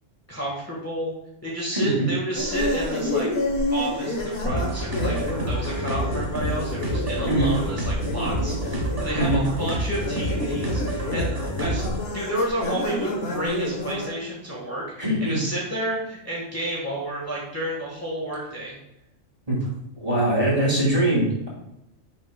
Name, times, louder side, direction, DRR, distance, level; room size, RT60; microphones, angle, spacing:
voice 1, 0.3-1.1 1.4-3.3 3.7-11.8 12.1-18.8, right 1 dB, 10° left, -5 dB, 1.6 m, -30 dB
voice 2, 1.7-2.1 7.2-7.5 9.1-9.4 15.0-15.4 19.5-19.7 20.0-21.5, right 1 dB, 30° right, -4 dB, 3.0 m, -22 dB
sound 1, 2.3-14.1, left 1 dB, 55° left, 1.5 m, -29 dB
sound 2, 4.4-12.1, right 1 dB, 70° right, 1.7 m, -28 dB
10.5 x 6.2 x 2.3 m, 0.85 s
omnidirectional pair, 1.3 m